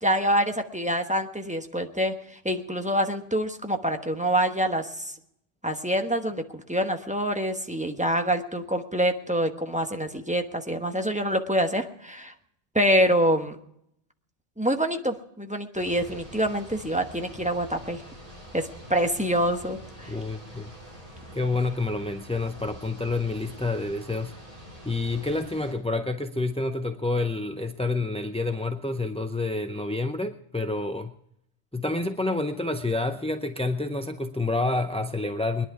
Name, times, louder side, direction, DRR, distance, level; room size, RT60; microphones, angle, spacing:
voice 1, 0.0-2.1 2.4-5.1 5.6-12.3 12.7-13.6 14.6-18.0 18.5-20.1, equal, 5° right, 5 dB, 1.0 m, -26 dB
sound 1, 15.7-25.7, equal, 35° right, 4.5 m, -45 dB
voice 2, 20.1-20.7 21.3-24.3 24.8-31.1 31.7-35.7, left 2 dB, 10° left, 7 dB, 0.4 m, -28 dB
21.5 x 10.5 x 4.7 m, 0.75 s
omnidirectional pair, 1.1 m